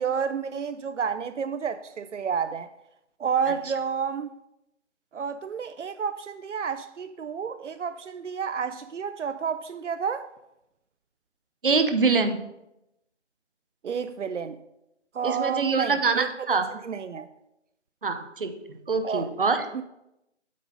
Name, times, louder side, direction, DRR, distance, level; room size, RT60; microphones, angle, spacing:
voice 1, 0.0-2.7 3.2-4.3 5.1-10.3 13.8-14.6 15.1-17.3 19.0-19.3 19.7-19.8, right 6 dB, 85° right, 0.5 m, -30 dB
voice 2, 11.6-12.4 15.2-16.7 18.0-19.6, right 4 dB, 50° right, 0.8 m, -25 dB
8.4 x 3.9 x 5.1 m
figure-of-eight pair, 160°, 35 cm